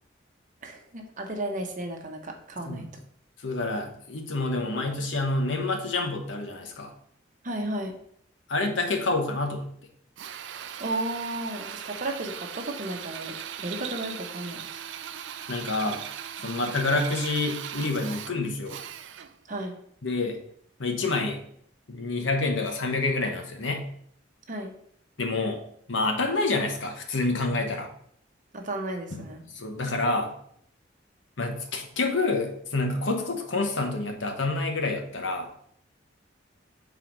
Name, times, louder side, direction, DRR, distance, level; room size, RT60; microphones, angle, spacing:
voice 1, 0.6-2.9 7.4-8.0 10.8-14.8 19.5-19.8 24.5-24.7 28.5-29.4, right 1 dB, 40° right, 3 dB, 0.9 m, -34 dB
voice 2, 3.4-6.9 8.5-9.6 15.5-16.0 16.4-18.8 20.0-20.4 20.8-21.4 21.9-23.9 25.2-25.6 25.9-27.9 29.1-29.2 29.5-30.3 31.4-35.5, left 2 dB, 75° left, 3 dB, 1.0 m, -28 dB
Drill, 10.2-19.4, right 9 dB, 65° right, 0.4 m, -39 dB
4.5 x 4.1 x 5.2 m, 0.67 s
head